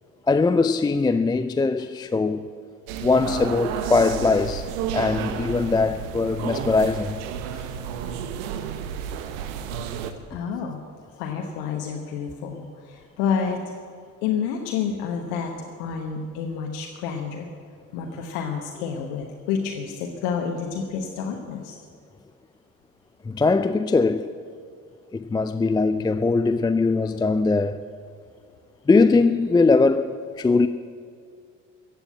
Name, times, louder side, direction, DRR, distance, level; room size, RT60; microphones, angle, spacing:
voice 1, 0.3-2.5 3.0-4.7 4.9-7.2 23.2-24.3 25.1-27.8 28.9-30.7, left 3 dB, 10° left, 0.4 m, -21 dB
sound 1, 2.9-10.1, right 8 dB, 70° right, 1.0 m, -31 dB
voice 2, 10.3-10.8 11.1-13.6 14.2-17.5 17.9-21.7, left 6 dB, 65° left, 1.2 m, -29 dB
15.5 x 7.8 x 8.7 m
figure-of-eight pair, 55°, 42 cm